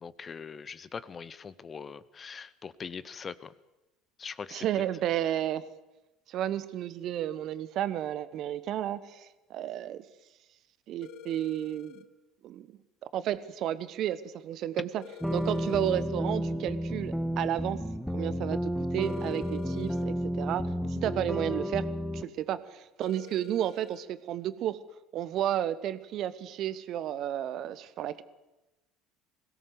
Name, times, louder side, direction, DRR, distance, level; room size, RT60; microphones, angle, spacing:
voice 1, 0.0-3.5 4.2-4.7, left 6 dB, 30° left, 18 dB, 0.8 m, -42 dB
voice 2, 4.5-5.6 6.3-10.0 10.9-12.0 12.4-12.7 13.1-15.0 15.3-17.8 18.1-21.9 22.1-24.8 25.1-28.2, right 11 dB, 50° right, 15 dB, 1.1 m, -32 dB
sound 1, 11.0-12.1 15.0-16.1 19.0-20.1 23.0-24.1, left 9 dB, 55° left, 1.2 m, -48 dB
sound 2, 15.2-22.2, equal, ahead, 1.0 m, -32 dB
21.5 x 17.5 x 6.9 m, 1.0 s
figure-of-eight pair, 65°, 0 cm